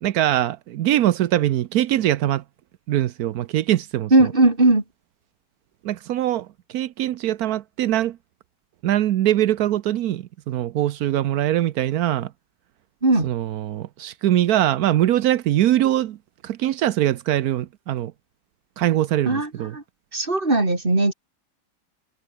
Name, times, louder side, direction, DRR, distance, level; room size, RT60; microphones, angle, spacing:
voice 1, 0.0-2.4 2.9-4.3 5.8-8.2 8.8-12.3 13.2-16.2 16.4-18.1 18.8-19.8, right 13 dB, 65° right, 0.9 m, -22 dB
voice 2, 4.1-4.8 13.0-13.3 19.3-19.8 20.1-21.1, right 2 dB, 25° right, 3.9 m, -18 dB
omnidirectional pair, 2.2 m